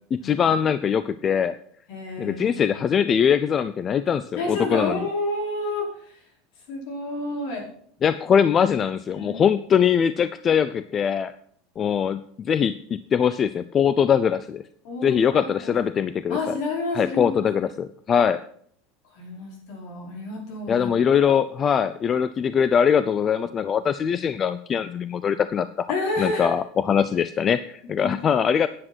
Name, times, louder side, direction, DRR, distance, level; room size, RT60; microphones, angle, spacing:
voice 1, 0.1-1.5 2.2-5.1 8.0-11.3 11.8-14.6 15.0-16.5 16.9-18.4 20.7-25.9 26.2-28.7, left 7 dB, 30° left, 14 dB, 0.4 m, -22 dB
voice 2, 1.9-2.8 4.3-6.2 6.7-7.6 9.1-9.4 14.8-15.7 16.3-17.4 19.1-20.9 25.9-26.5 28.0-28.4, left 2 dB, 65° left, 0 dB, 4.9 m, -30 dB
10.0 x 7.6 x 6.2 m, 0.62 s
supercardioid pair, 135°, 0 cm